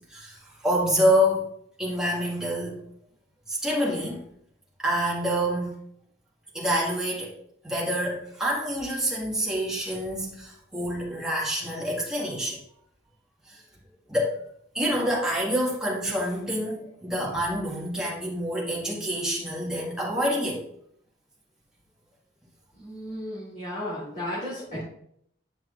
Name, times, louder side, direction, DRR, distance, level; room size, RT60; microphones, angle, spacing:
voice 1, 0.0-1.5 1.8-2.8 3.5-4.3 4.8-5.8 6.5-7.4 7.6-12.6 13.5-13.6 14.1-14.4 14.7-20.7 24.7-24.8, equal, 5° right, -5 dB, 1.8 m, -27 dB
voice 2, 22.8-24.8, left 1 dB, 40° left, -9 dB, 2.9 m, -34 dB
9.8 x 5.9 x 2.5 m, 0.70 s
head